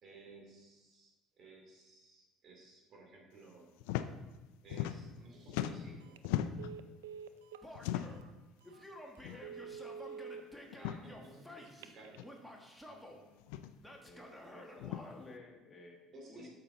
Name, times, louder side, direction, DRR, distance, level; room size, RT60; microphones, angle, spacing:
voice 1, 0.0-3.7 4.6-6.2 10.5-12.4 12.8-13.4 16.1-16.5, right 2 dB, 50° right, 0 dB, 2.5 m, -56 dB
sound 1, 3.8-4.1 4.4-5.2 5.5-6.7 7.7-8.3 9.2-9.4 9.7-9.8 10.7-11.0 12.1-12.2 13.4-13.7 14.8-15.0, left 12 dB, 80° left, 0.4 m, -38 dB
Telephone, 6.0-6.3 6.6-7.7 8.2-8.3 8.7-8.8 9.3-10.4 11.6-12.2, right 7 dB, 90° right, 0.4 m, -47 dB
Male speech man speaking / Yell, 7.6-8.2 8.6-11.9 12.2-13.2 13.8-15.1, left 1 dB, ahead, 1.4 m, -52 dB
voice 2, 14.0-16.5, left 2 dB, 30° left, 1 dB, 1.5 m, -54 dB
8.7 x 6.7 x 3.8 m, 1.2 s
hypercardioid pair, 75°, 0 cm